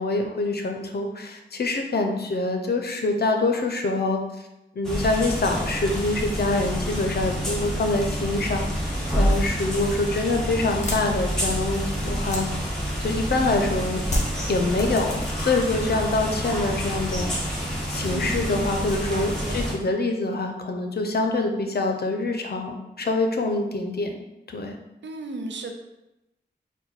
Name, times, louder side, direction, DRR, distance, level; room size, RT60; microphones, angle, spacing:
voice 1, 0.0-4.2 4.7-12.5 13.0-14.0 14.5-17.3 17.9-24.2 24.5-24.8, left 2 dB, 60° left, 4 dB, 0.6 m, -25 dB
sound 1, 4.8-19.7, equal, 5° left, 1.2 m, -28 dB
sound 2, 10.8-13.4 14.0-15.6 15.9-16.5, equal, 40° left, 1.2 m, -31 dB
voice 2, 18.1-19.8 25.0-25.7, right 3 dB, 80° right, 4 dB, 0.5 m, -36 dB
4.3 x 2.2 x 4.0 m, 0.93 s
cardioid pair, 60°, 19 cm